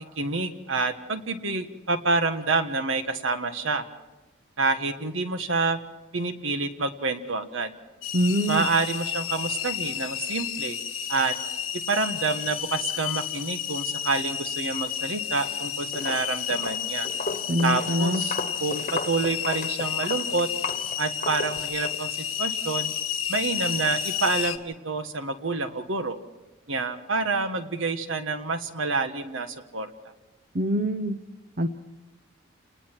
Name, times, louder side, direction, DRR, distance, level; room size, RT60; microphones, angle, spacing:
voice 1, 0.2-3.8 4.6-5.8 6.1-7.7 8.5-10.8 11.1-11.3 11.7-17.1 17.6-20.5 21.0-22.1 22.4-22.9 23.3-26.2 26.7-29.9, right 3 dB, 70° right, 9 dB, 1.4 m, -28 dB
sound 1, 8.0-24.6, left 9 dB, 85° left, 1.3 m, -31 dB
voice 2, 8.1-8.7 17.5-18.2 30.5-31.2 31.6-31.7, equal, 45° right, 8 dB, 0.8 m, -24 dB
Walk footsteps, 15.3-15.6 15.9-22.0, left 3 dB, 35° left, 1.3 m, -35 dB
29.5 x 19.5 x 4.6 m, 1.0 s
head